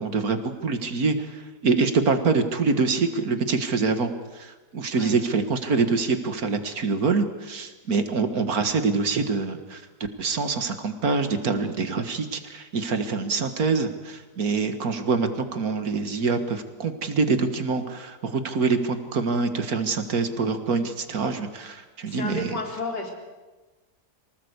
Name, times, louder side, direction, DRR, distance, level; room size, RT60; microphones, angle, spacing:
voice 1, 0.0-9.8 10.2-22.5, right 4 dB, 60° right, 9 dB, 2.0 m, -25 dB
voice 2, 22.1-23.1, left 2 dB, 75° left, 1 dB, 4.6 m, -32 dB
24.5 x 19.0 x 8.2 m, 1.2 s
omnidirectional pair, 1.8 m